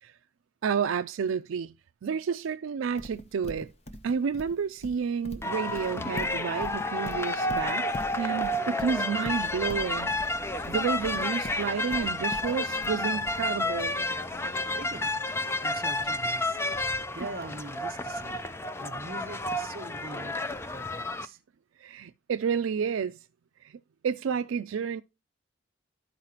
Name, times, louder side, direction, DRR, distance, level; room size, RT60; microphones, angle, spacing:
voice 1, 0.6-1.7 2.0-3.7 4.0-7.9 8.2-10.1 10.7-14.0 21.8-23.2 23.6-25.0, right 6 dB, 80° right, 0.4 m, -30 dB
Livestock farm animals working animals, 3.0-13.8, left 1 dB, 30° left, 0.9 m, -42 dB
sound 1, 5.4-21.3, left 2 dB, 15° left, 0.4 m, -31 dB
sound 2, 9.3-16.9, left 1 dB, 80° left, 2.1 m, -50 dB
voice 2, 14.8-18.4 18.8-20.9 21.2-21.4, right 2 dB, 50° right, 0.8 m, -43 dB
13.0 x 4.8 x 2.8 m
head